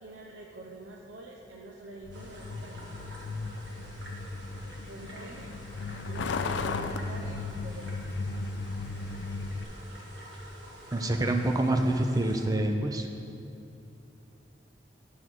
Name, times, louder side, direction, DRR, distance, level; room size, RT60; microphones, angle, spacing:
voice 1, 0.0-3.1 4.8-5.5 6.1-7.9, right 2 dB, 90° right, -1 dB, 0.6 m, -46 dB
Truck, 2.0-9.6, left 3 dB, 70° left, 0.4 m, -36 dB
sound 1, 2.1-12.4, right 1 dB, 70° right, 1.4 m, -48 dB
voice 2, 10.9-13.1, right 1 dB, 20° right, 4 dB, 0.5 m, -26 dB
9.1 x 3.7 x 6.1 m, 2.7 s
head